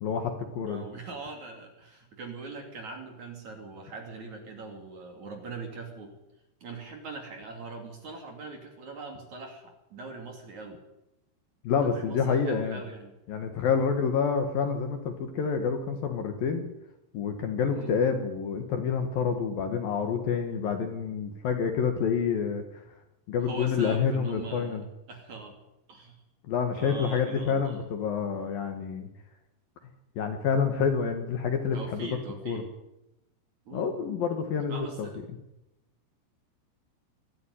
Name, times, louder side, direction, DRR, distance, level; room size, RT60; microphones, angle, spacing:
voice 1, 0.0-0.8 11.6-12.8 13.3-16.6 17.1-22.6 23.3-24.8 26.5-29.1 30.2-32.2 32.5-32.6 33.7-35.1, left 6 dB, 60° left, 6 dB, 2.9 m, -28 dB
voice 2, 0.6-6.1 6.6-10.8 11.8-13.1 17.7-18.0 23.4-24.8 25.1-25.6 25.9-26.2 26.7-27.8 31.7-32.7 33.7-33.9 34.7-35.2, right 3 dB, 45° right, 4 dB, 3.5 m, -41 dB
22.0 x 13.5 x 10.0 m, 0.91 s
omnidirectional pair, 5.4 m